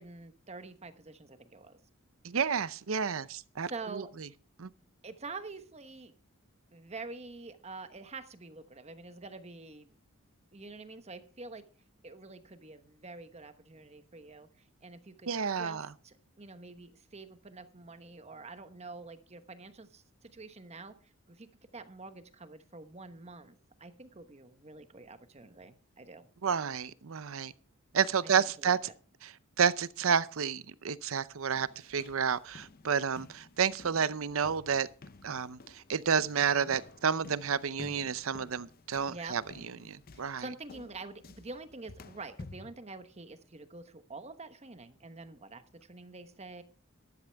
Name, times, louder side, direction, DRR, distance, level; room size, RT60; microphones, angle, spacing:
voice 1, 0.0-1.8 3.7-4.1 5.0-6.1 6.7-10.0 10.5-11.6 12.0-26.3 28.2-28.3 28.6-28.8 39.1-39.4 40.1-46.6, right 3 dB, 30° right, 1.1 m, -47 dB
voice 2, 2.2-4.0 4.6-4.7 15.3-15.9 26.4-27.5 27.9-28.8 29.2-29.3 29.6-34.9 35.2-40.4, right 6 dB, 70° right, 0.6 m, -30 dB
sound 1, 31.5-42.7, left 3 dB, 45° left, 0.7 m, -53 dB
13.0 x 12.0 x 3.4 m
head